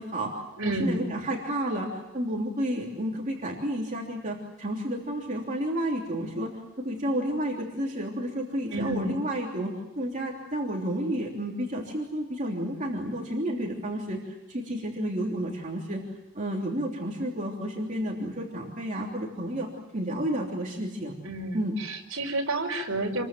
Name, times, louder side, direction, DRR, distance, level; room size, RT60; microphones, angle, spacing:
voice 1, 0.0-6.5 6.8-16.0 16.3-21.1 21.5-21.8, right 1 dB, 35° right, -1 dB, 3.2 m, -31 dB
voice 2, 0.6-1.1 8.7-9.2 21.2-21.6 21.9-23.2, right 2 dB, 60° right, 2 dB, 5.4 m, -30 dB
28.5 x 22.5 x 7.6 m, 1.0 s
head